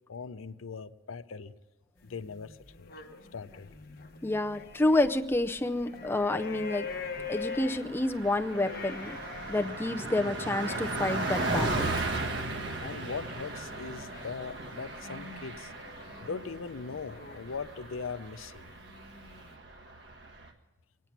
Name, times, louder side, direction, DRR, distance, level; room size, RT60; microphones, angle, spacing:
voice 1, 0.1-1.5 2.0-2.9 3.3-3.7 12.8-15.7 16.2-18.7, left 5 dB, 85° left, 13 dB, 0.6 m, -40 dB
sound 1, 2.0-5.2 5.5-18.1 18.7-19.6, left 4 dB, 50° left, 1.0 m, -45 dB
voice 2, 4.2-6.9 7.3-9.2 9.5-11.9, left 2 dB, 10° left, 6 dB, 0.5 m, -29 dB
Car passing by, 4.8-5.5 5.8-5.9 6.2-20.5, right 2 dB, 65° right, 1.5 m, -37 dB
25.0 x 9.4 x 5.9 m, 1.1 s
head